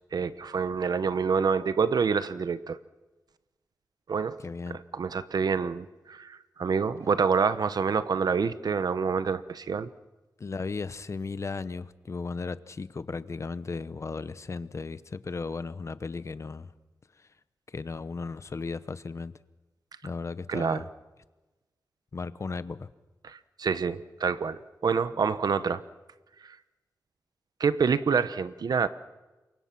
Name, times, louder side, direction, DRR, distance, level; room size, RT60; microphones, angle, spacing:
voice 1, 0.1-2.8 4.1-4.4 4.7-9.9 20.5-20.8 23.2-25.8 27.6-28.9, right 5 dB, 75° right, 13 dB, 1.0 m, -27 dB
voice 2, 4.4-4.8 10.4-16.7 17.7-19.3 20.0-20.9 22.1-22.9, left 4 dB, 45° left, 14 dB, 0.9 m, -35 dB
28.0 x 24.0 x 6.0 m, 1.1 s
wide cardioid pair, 125°, 7 cm